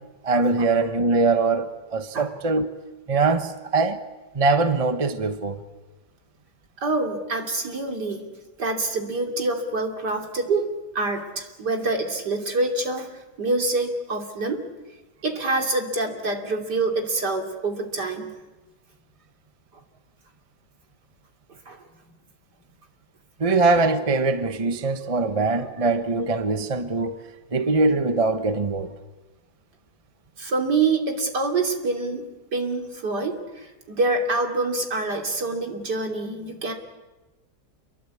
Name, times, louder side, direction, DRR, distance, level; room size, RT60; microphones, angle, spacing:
voice 1, 0.2-2.7 3.1-4.0 4.3-5.6 23.4-27.2 27.5-28.9, right 3 dB, 20° right, 1.1 m, -22 dB
voice 2, 6.8-8.3 8.6-14.6 15.2-18.3 21.7-21.8 22.6-22.7 30.4-36.7, right 3 dB, 65° right, 3.6 m, -26 dB
29.0 x 23.0 x 8.5 m
omnidirectional pair, 2.0 m